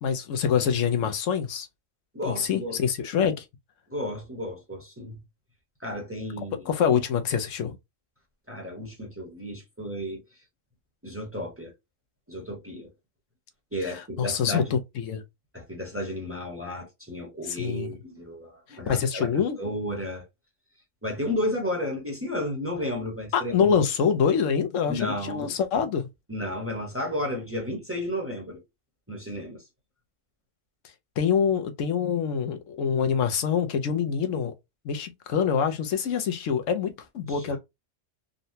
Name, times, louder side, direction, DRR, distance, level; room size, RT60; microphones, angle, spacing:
voice 1, 0.0-1.7 2.2-3.4 6.7-7.8 13.8-15.2 17.5-17.9 18.7-19.6 23.3-26.1 31.2-34.5 34.8-37.6, left 7 dB, 85° left, 1.0 m, -25 dB
voice 2, 2.1-2.8 3.9-5.2 5.8-6.7 8.5-10.2 11.0-11.7 12.3-12.9 13.7-14.7 15.5-20.2 21.0-23.8 24.9-25.5 26.3-28.6 29.1-29.6 37.3-37.6, left 1 dB, 10° right, 0.9 m, -33 dB
3.8 x 2.1 x 2.7 m
omnidirectional pair, 1.3 m